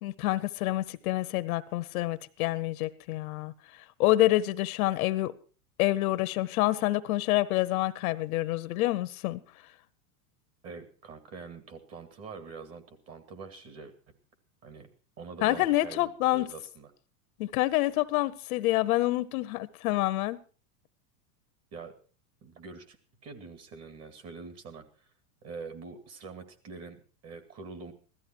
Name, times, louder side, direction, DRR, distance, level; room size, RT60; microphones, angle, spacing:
voice 1, 0.0-3.5 4.0-5.3 5.8-9.4 15.4-16.5 17.4-20.4, left 17 dB, 65° left, 1.0 m, -27 dB
voice 2, 10.6-13.9 14.6-14.9 15.2-16.9 21.7-21.9 22.4-23.0 23.2-24.8 25.4-27.9, right 4 dB, 30° right, 2.3 m, -45 dB
16.0 x 13.5 x 4.4 m
supercardioid pair, 135°, 46 cm